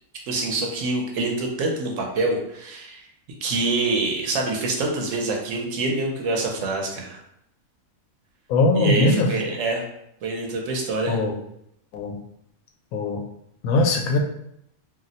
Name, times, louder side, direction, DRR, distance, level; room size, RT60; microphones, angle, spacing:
voice 1, 0.3-3.0 3.4-7.2 8.8-9.8 10.2-11.2, right 2 dB, 70° right, 1 dB, 0.9 m, -26 dB
voice 2, 8.5-9.3 11.1-11.3 11.9-12.2 12.9-13.2 13.6-14.2, left 2 dB, 85° left, 3 dB, 1.0 m, -20 dB
2.6 x 2.0 x 3.9 m, 0.77 s
omnidirectional pair, 1.5 m